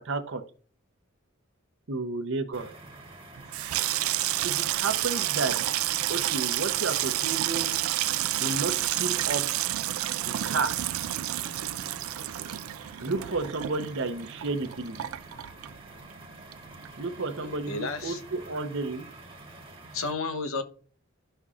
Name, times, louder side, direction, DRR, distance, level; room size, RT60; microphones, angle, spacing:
voice 1, 0.0-0.4 1.9-2.7 4.4-5.7 6.1-7.8 8.4-9.4 10.2-10.8 13.0-15.0 17.0-19.1, right 3 dB, 65° right, 7 dB, 0.8 m, -32 dB
sound 1, 2.5-20.1, right 2 dB, 25° right, 1.4 m, -47 dB
Water tap faucet / Sink (filling or washing), 3.4-16.2 16.5-17.2 17.4-17.8, right 14 dB, 90° right, 0.4 m, -30 dB
voice 2, 17.4-18.2 19.9-20.6, left 3 dB, 80° left, 8 dB, 1.0 m, -32 dB
12.5 x 5.4 x 2.5 m, 0.43 s
head